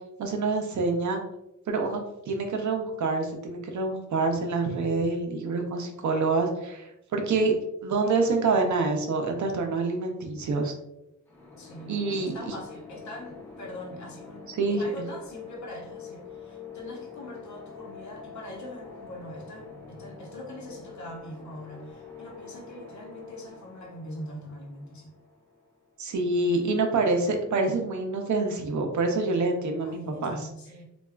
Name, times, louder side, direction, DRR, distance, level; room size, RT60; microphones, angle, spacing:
voice 1, 0.2-1.2 1.7-2.0 2.3-7.5 7.8-10.7 11.9-12.5 14.6-14.8 26.0-30.5, right 3 dB, 65° right, 3 dB, 0.6 m, -26 dB
sound 1, 11.3-26.0, left 5 dB, 5° left, 0.7 m, -46 dB
voice 2, 11.6-25.1 29.8-30.8, left 1 dB, 60° left, -1 dB, 0.8 m, -42 dB
3.4 x 2.3 x 2.2 m, 0.88 s
wide cardioid pair, 110°, 32 cm